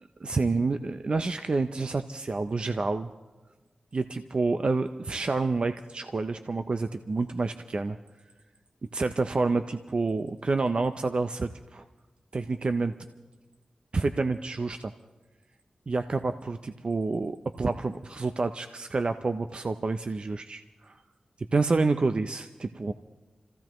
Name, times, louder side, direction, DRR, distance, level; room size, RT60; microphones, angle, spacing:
voice 1, 0.2-3.1 3.9-8.0 8.9-11.8 12.3-12.9 13.9-14.9 15.9-21.0 21.4-22.9, right 3 dB, 50° right, 9 dB, 0.5 m, -28 dB
29.0 x 15.5 x 3.0 m, 1.2 s
wide cardioid pair, 85°, 2 cm